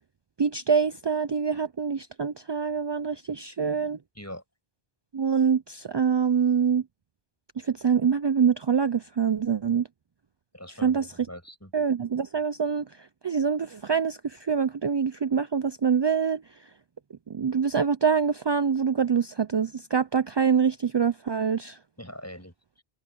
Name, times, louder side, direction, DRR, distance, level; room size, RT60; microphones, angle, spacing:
voice 1, 0.4-4.0 5.1-6.8 7.6-9.9 10.8-11.1 11.7-16.7 17.3-21.8, right 6 dB, 45° right, 0.3 m, -25 dB
voice 2, 10.5-11.7 22.0-22.8, equal, 15° left, 7.9 m, -43 dB
omnidirectional pair, 1.0 m